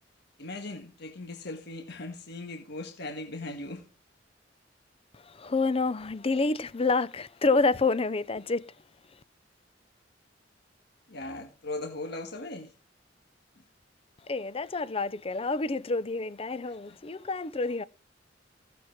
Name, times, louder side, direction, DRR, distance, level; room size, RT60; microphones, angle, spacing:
voice 1, 0.4-3.9 11.1-12.7, left 2 dB, 65° left, 1.6 m, -38 dB
voice 2, 5.1-8.7 14.3-17.8, left 3 dB, 30° left, 0.6 m, -28 dB
15.5 x 7.2 x 5.9 m
head